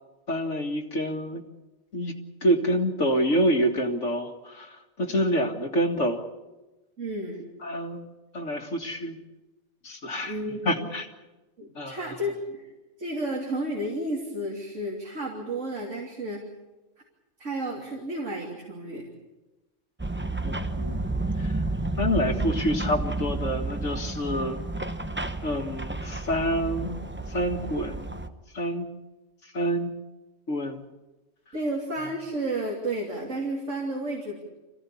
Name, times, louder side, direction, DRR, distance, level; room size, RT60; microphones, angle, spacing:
voice 1, 0.3-1.4 1.9-2.1 2.4-4.7 5.0-6.3 7.6-8.1 8.3-9.2 9.8-10.4 10.7-11.1 11.8-12.1 20.4-21.0 21.4-21.5 22.0-24.6 25.4-27.0 27.3-28.2 28.5-28.9 29.5-29.9 30.5-30.8, equal, 80° left, 4 dB, 2.3 m, -27 dB
voice 2, 7.0-7.5 10.2-10.9 11.6-12.7 13.0-16.4 17.4-19.1 31.5-34.4, right 1 dB, 85° right, -2 dB, 3.4 m, -32 dB
sound 1, 20.0-28.3, right 2 dB, 10° right, 0.8 m, -31 dB
25.5 x 16.0 x 8.5 m, 1.1 s
omnidirectional pair, 1.3 m